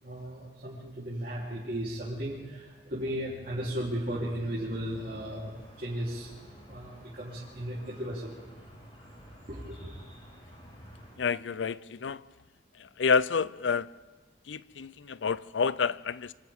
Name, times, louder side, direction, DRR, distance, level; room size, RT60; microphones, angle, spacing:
voice 1, 0.0-6.3 6.7-8.3 9.5-10.0, equal, 50° right, 3.5 m, -35 dB
sound 1, 4.9-11.1, equal, 30° left, 7.1 m, -51 dB
voice 2, 11.2-12.2 12.8-13.9 14.5-16.3, left 5 dB, 85° left, 0.5 m, -29 dB
27.5 x 26.0 x 3.6 m
head